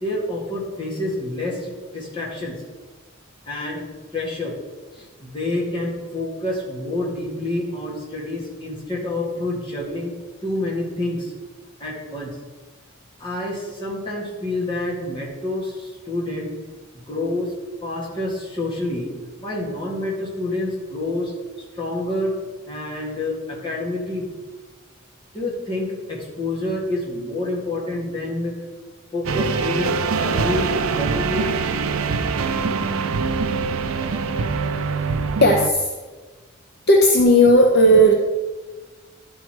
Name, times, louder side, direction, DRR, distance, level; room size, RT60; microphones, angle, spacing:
voice 1, 0.0-2.5 3.5-3.9 4.1-4.6 4.9-10.1 10.4-11.3 11.8-12.3 13.2-19.1 19.4-21.3 21.8-22.4 22.7-24.3 25.3-28.5 29.1-31.6, left 1 dB, 25° left, -4 dB, 2.0 m, -28 dB
sound 1, 29.3-35.7, right 4 dB, 85° right, 0.5 m, -23 dB
voice 2, 35.4-35.9 36.9-38.1, equal, 50° left, 0 dB, 0.8 m, -14 dB
12.0 x 4.6 x 4.6 m, 1.3 s
head